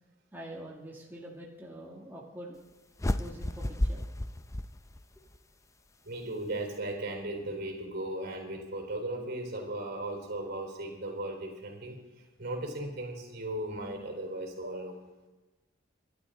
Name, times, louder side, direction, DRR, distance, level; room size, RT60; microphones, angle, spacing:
voice 1, 0.3-2.6 3.2-4.0, right 1 dB, 10° right, -3 dB, 2.0 m, -45 dB
sound 1, 3.0-5.4, left 1 dB, 15° left, 0.5 m, -32 dB
voice 2, 6.0-15.0, right 1 dB, 55° right, 3 dB, 4.0 m, -37 dB
27.5 x 12.5 x 3.9 m, 1.2 s
head